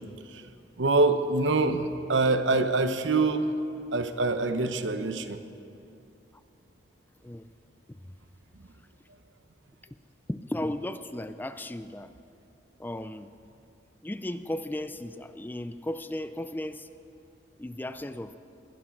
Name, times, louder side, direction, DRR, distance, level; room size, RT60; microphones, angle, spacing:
voice 1, 0.8-3.5 3.9-5.4, right 3 dB, 85° right, 9 dB, 0.9 m, -25 dB
voice 2, 10.3-12.1 12.8-13.3 14.0-16.9 17.6-18.4, left 1 dB, 10° left, 11 dB, 0.4 m, -35 dB
20.5 x 11.0 x 5.9 m, 2.7 s
head